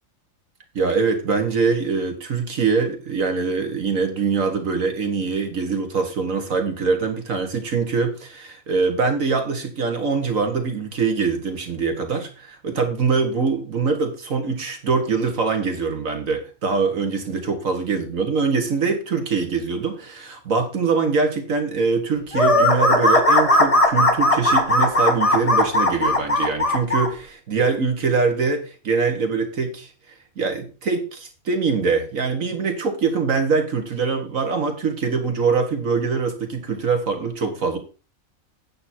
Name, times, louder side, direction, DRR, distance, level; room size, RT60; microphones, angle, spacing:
voice 1, 0.8-29.9 30.4-37.8, right 4 dB, 70° right, 6 dB, 1.8 m, -23 dB
sound 1, 22.3-27.1, left 1 dB, 25° left, 1.3 m, -17 dB
8.8 x 7.7 x 4.3 m, 0.33 s
omnidirectional pair, 1.5 m